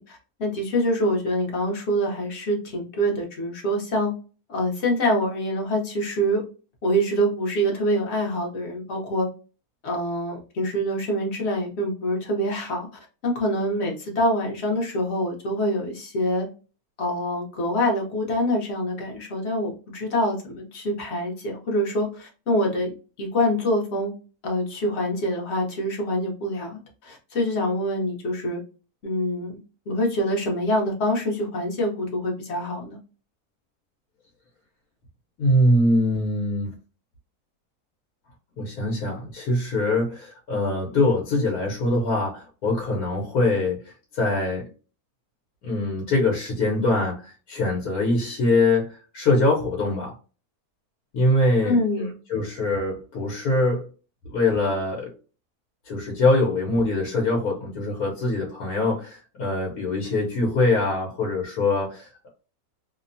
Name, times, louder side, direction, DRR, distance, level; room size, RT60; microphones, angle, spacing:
voice 1, 0.0-4.1 4.5-6.4 6.8-9.3 9.8-12.9 13.2-16.5 17.0-22.9 23.2-24.1 24.4-28.6 29.0-29.6 29.9-33.0 51.6-52.1, equal, 50° left, 0 dB, 1.1 m, -25 dB
voice 2, 35.4-36.7 38.6-43.8 44.1-44.6 45.6-48.9 49.1-50.1 51.1-53.9 54.3-55.1 55.9-62.3, left 2 dB, 75° left, -2 dB, 1.3 m, -23 dB
2.9 x 2.1 x 2.5 m, 0.34 s
omnidirectional pair, 1.6 m